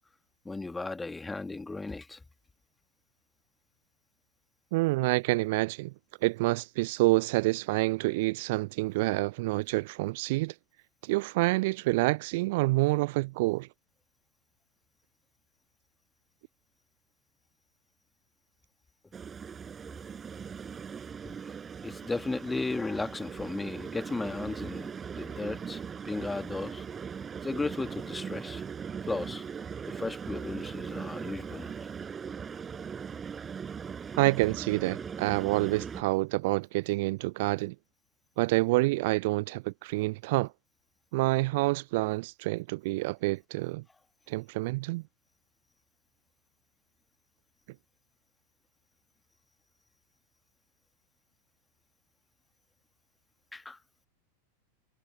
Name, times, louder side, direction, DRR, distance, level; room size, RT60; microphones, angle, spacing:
voice 1, 0.5-2.2 21.8-26.9 27.4-28.6 29.1-29.5 29.9-31.7 53.5-53.8, left 3 dB, 10° left, 1.8 m, -35 dB
voice 2, 4.7-5.9 6.2-10.5 11.0-13.7 34.2-37.7 38.4-40.5 41.1-43.8 44.3-45.0, right 22 dB, 50° right, 0.4 m, -27 dB
sound 1, 19.1-36.0, right 6 dB, 20° right, 6.1 m, -40 dB
figure-of-eight pair, 90°, 0 cm